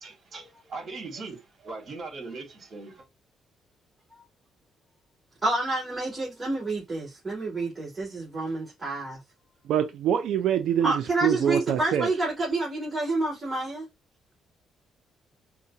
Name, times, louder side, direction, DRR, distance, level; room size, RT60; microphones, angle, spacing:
voice 1, 0.0-3.0, right 3 dB, 50° right, 1.8 m, -40 dB
voice 2, 5.4-9.2 10.8-13.8, right 2 dB, 30° right, 2.6 m, -28 dB
voice 3, 9.7-10.9 11.2-12.1, right 9 dB, 80° right, 0.4 m, -24 dB
4.7 x 2.2 x 2.7 m
cardioid pair, 90°, 0 cm